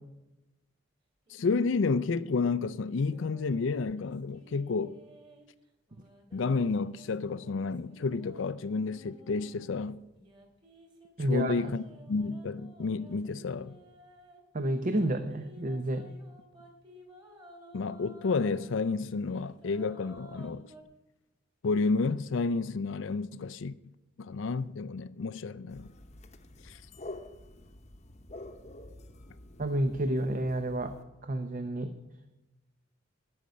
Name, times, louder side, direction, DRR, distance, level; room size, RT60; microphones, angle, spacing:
voice 1, 1.3-5.0 6.3-10.0 11.3-11.8 12.1-13.7 17.7-20.7 21.6-23.7 24.2-25.9 26.6-26.8, left 4 dB, 70° left, 0.4 m, -30 dB
sound 1, 1.3-5.5 5.9-9.6 10.1-14.4 14.9-18.6 19.1-20.8, right 1 dB, 25° right, 2.0 m, -55 dB
voice 2, 11.2-11.7 14.5-16.1 29.6-30.9 31.2-31.9, right 1 dB, 40° right, 0.7 m, -30 dB
sound 2, 25.7-31.0, left 2 dB, 35° left, 0.9 m, -48 dB
12.5 x 6.5 x 9.4 m
head